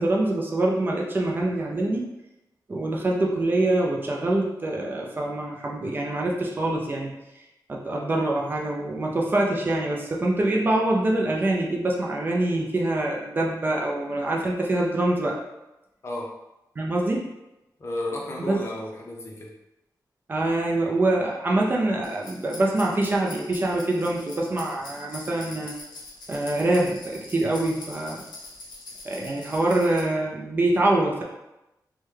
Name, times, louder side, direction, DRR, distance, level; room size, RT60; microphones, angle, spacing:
voice 1, 0.0-2.1 2.7-7.1 7.7-15.4 16.8-17.2 18.4-18.6 20.3-25.7 26.3-28.2 29.0-31.2, right 2 dB, 30° right, -2 dB, 0.4 m, -25 dB
voice 2, 17.8-19.5, left 1 dB, 35° left, -1 dB, 0.5 m, -33 dB
sound 1, 22.0-30.0, left 2 dB, 85° left, 0.7 m, -43 dB
3.4 x 2.1 x 3.2 m, 0.93 s
wide cardioid pair, 165°, 7 cm